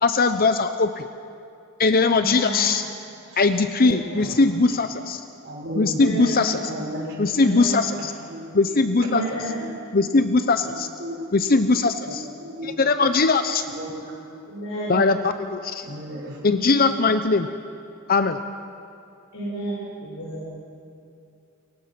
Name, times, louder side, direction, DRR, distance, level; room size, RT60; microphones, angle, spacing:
voice 1, 0.0-1.1 1.8-2.9 3.4-5.2 5.8-6.6 7.2-8.1 8.5-9.2 9.9-10.9 11.3-12.2 12.6-13.6 14.9-15.9 16.4-17.5 18.1-18.4, left 3 dB, 45° left, 9 dB, 0.7 m, -20 dB
voice 2, 2.1-2.6 3.9-4.3 5.9-6.6 7.4-7.8 9.0-9.6 14.5-15.0 16.5-17.0 19.3-20.4, right 1 dB, 70° left, -7 dB, 6.1 m, -31 dB
voice 3, 3.3-4.3 5.4-6.0 6.7-7.2 7.9-8.5 9.2-9.7 10.6-11.3 12.1-12.7 13.7-14.1 15.8-16.5, equal, 60° right, -4 dB, 5.4 m, -35 dB
29.0 x 23.0 x 6.1 m, 2.6 s
head